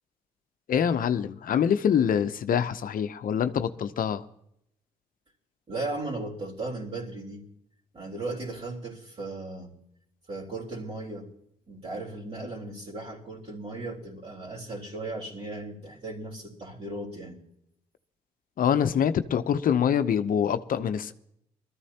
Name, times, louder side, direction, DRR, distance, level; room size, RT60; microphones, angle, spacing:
voice 1, 0.7-4.2 18.6-21.1, left 8 dB, 60° left, 0.7 m, -25 dB
voice 2, 5.7-7.5 7.9-9.7 10.3-11.3 11.7-17.4, right 2 dB, 40° right, 3.6 m, -36 dB
21.0 x 13.5 x 2.9 m
supercardioid pair, 55°, 16 cm